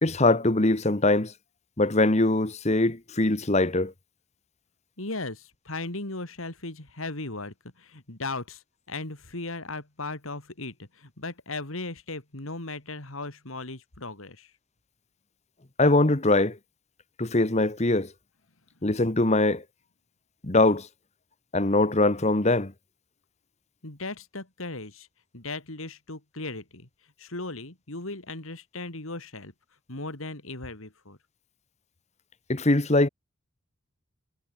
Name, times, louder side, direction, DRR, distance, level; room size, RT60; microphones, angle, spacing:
voice 1, 0.0-1.3 1.8-3.9 15.8-16.6 17.2-18.1 18.8-19.6 20.4-20.9 21.5-22.7 32.5-33.1, left 2 dB, 30° left, 1.3 m, -22 dB
voice 2, 5.0-14.5 23.8-25.1 25.3-26.9 27.2-29.5 29.9-31.2, left 2 dB, 75° left, 3.2 m, -37 dB
head